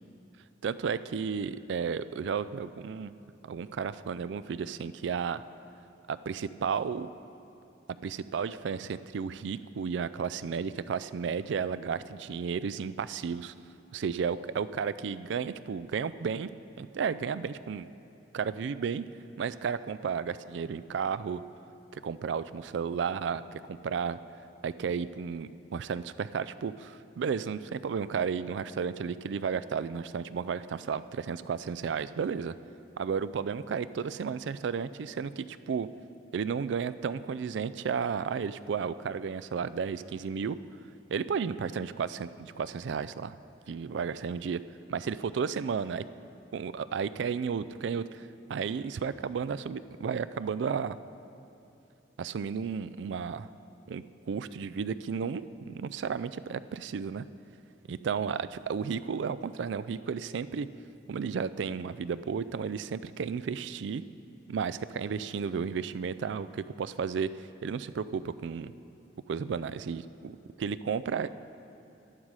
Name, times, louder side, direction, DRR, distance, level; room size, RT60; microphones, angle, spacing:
voice 1, 0.6-3.1 3.4-5.4 6.1-7.1 8.0-13.5 13.9-17.9 18.3-19.1 19.4-21.4 21.9-24.2 24.6-32.5 33.0-35.9 36.3-40.6 41.1-43.4 43.7-44.6 44.9-46.0 46.5-51.0 52.2-53.5 53.9-57.3 57.9-60.7 61.1-64.0 64.5-67.3 67.6-68.7 69.3-71.3, right 6 dB, 70° right, 14 dB, 0.3 m, -33 dB
11.5 x 11.0 x 4.8 m, 2.8 s
head